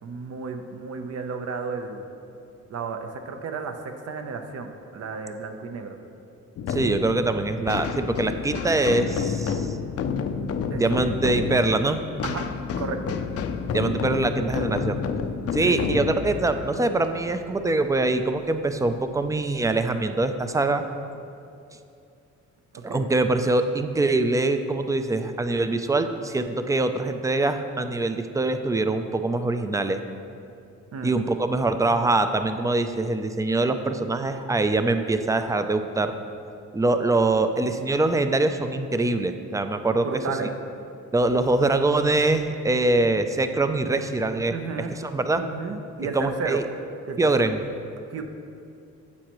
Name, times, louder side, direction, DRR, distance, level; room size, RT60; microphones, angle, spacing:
voice 1, 0.0-2.1 2.7-6.0 10.7-11.1 12.2-12.5 12.8-13.2 15.6-16.1 22.9-23.1 30.9-31.2 39.9-40.5 44.5-44.9 45.3-46.6 47.1-47.5 48.1-48.2, right 5 dB, 55° right, 6 dB, 0.8 m, -33 dB
sound 1, 6.6-18.0, left 6 dB, 50° left, 0.5 m, -30 dB
voice 2, 6.7-9.8 10.7-12.0 13.7-15.0 15.5-20.8 22.8-30.0 31.0-36.1 36.7-40.1 41.1-44.6 44.9-45.4 46.1-46.6 47.2-47.6, right 2 dB, 10° right, 8 dB, 0.4 m, -23 dB
9.7 x 7.2 x 3.1 m, 2.6 s
cardioid pair, 90°, 30 cm